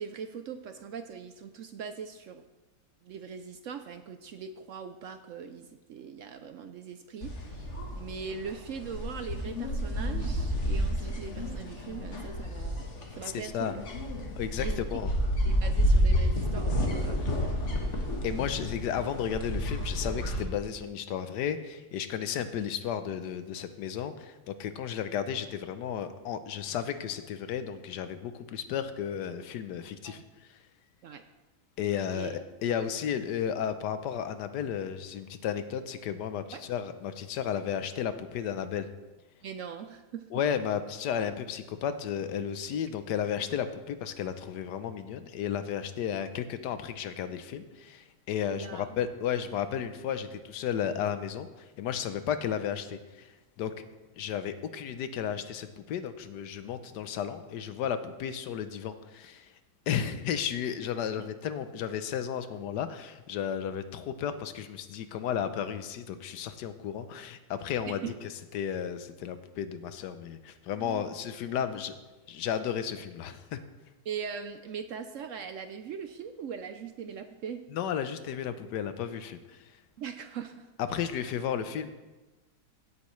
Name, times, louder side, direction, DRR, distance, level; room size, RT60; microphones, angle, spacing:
voice 1, 0.0-2.4 3.0-12.9 13.1-13.8 14.6-15.0 15.4-17.3 30.0-30.2 31.0-31.2 32.1-32.4 36.5-36.7 39.4-40.2 48.5-48.9 61.2-61.3 67.9-68.1 70.8-71.1 74.0-77.6 80.0-80.7, right 6 dB, 65° right, 8 dB, 0.8 m, -41 dB
sound 1, 7.2-20.4, equal, 45° left, 1.6 m, -30 dB
voice 2, 13.4-13.7 14.4-15.1 18.2-30.2 30.5-30.6 31.8-38.9 40.3-53.3 53.6-53.7 54.2-59.5 59.9-68.0 68.5-71.9 72.3-73.6 77.7-79.7 80.9-81.9, left 8 dB, 90° left, 11 dB, 1.3 m, -33 dB
16.5 x 8.4 x 3.2 m, 1.1 s
omnidirectional pair, 1.7 m